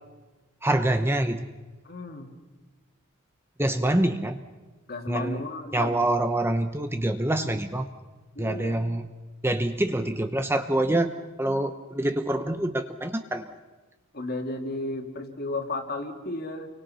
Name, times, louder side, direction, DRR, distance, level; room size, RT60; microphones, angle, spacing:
voice 1, 0.6-1.5 3.6-4.4 5.1-5.4 5.7-7.9 8.4-9.1 9.4-13.5, right 1 dB, 10° right, 8 dB, 0.8 m, -26 dB
voice 2, 1.8-2.3 4.9-6.0 8.4-8.8 14.1-16.7, left 2 dB, 45° left, 5 dB, 2.4 m, -33 dB
30.0 x 24.0 x 5.7 m, 1.2 s
head